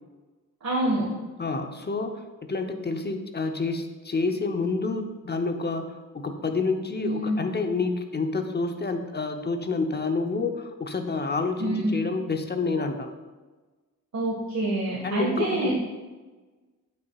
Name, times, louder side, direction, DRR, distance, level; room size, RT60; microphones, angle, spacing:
voice 1, 0.6-1.0 7.0-7.4 11.6-11.9 14.1-15.8, right 1 dB, 55° right, -5 dB, 1.8 m, -26 dB
voice 2, 1.4-13.1 15.0-15.8, left 3 dB, 30° left, 6 dB, 0.8 m, -28 dB
8.5 x 6.8 x 2.4 m, 1.3 s
cardioid pair, 70°, 34 cm